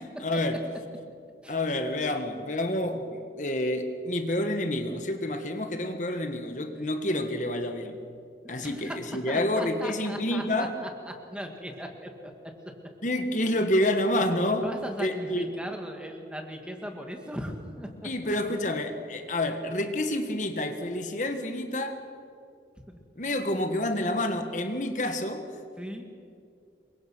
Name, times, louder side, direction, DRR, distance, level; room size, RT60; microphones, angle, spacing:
voice 1, 0.2-0.6 1.5-8.0 8.5-10.7 13.0-14.7 15.0-15.5 18.0-22.0 23.2-25.4, left 1 dB, 45° left, 6 dB, 1.6 m, -28 dB
voice 2, 8.4-9.0 9.3-12.1 14.6-18.1 22.9-23.0 25.8-26.0, equal, 5° right, 3 dB, 2.2 m, -38 dB
27.5 x 23.5 x 6.3 m, 2.4 s
head